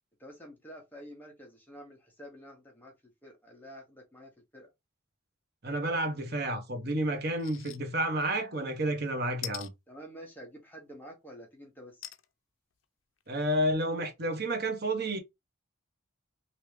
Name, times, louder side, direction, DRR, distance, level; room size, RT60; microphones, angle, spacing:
voice 1, 0.2-2.9 3.2-4.7 9.9-12.1, equal, 10° left, 0.9 m, -49 dB
voice 2, 5.6-9.7 13.3-15.2, right 1 dB, 50° right, 0.9 m, -30 dB
sound 1, 7.4-7.8 8.2-8.3 9.4-9.7 12.0-12.3 12.8-12.9 13.2-13.3, left 13 dB, 70° left, 0.5 m, -41 dB
3.3 x 2.7 x 3.1 m
head